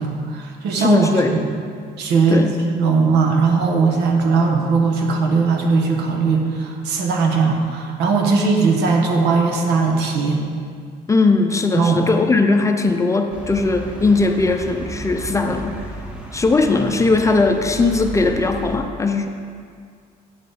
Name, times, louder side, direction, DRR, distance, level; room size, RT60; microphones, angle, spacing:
voice 1, 0.0-1.5 2.0-10.4 11.7-12.1, right 4 dB, 80° right, 2 dB, 1.2 m, -19 dB
voice 2, 0.8-1.4 2.3-2.5 11.1-15.8 16.3-19.3, left 3 dB, 20° left, 5 dB, 0.6 m, -18 dB
sound 1, 13.3-18.8, right 1 dB, 5° right, 1.2 m, -33 dB
8.6 x 5.3 x 5.7 m, 2.2 s
cardioid pair, 110°, 17 cm